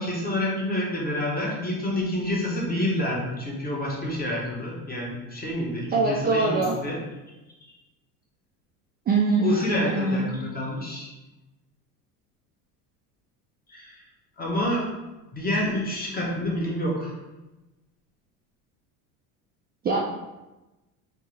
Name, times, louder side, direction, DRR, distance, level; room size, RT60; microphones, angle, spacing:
voice 1, 0.0-7.0 9.4-11.1 13.7-14.0 14.4-14.8 15.3-17.1, left 1 dB, 20° left, -3 dB, 1.2 m, -28 dB
voice 2, 5.9-6.7 9.1-10.3 19.8-20.0, right 3 dB, 20° right, -2 dB, 0.4 m, -23 dB
3.5 x 2.9 x 3.3 m, 1.1 s
hypercardioid pair, 85°, 43 cm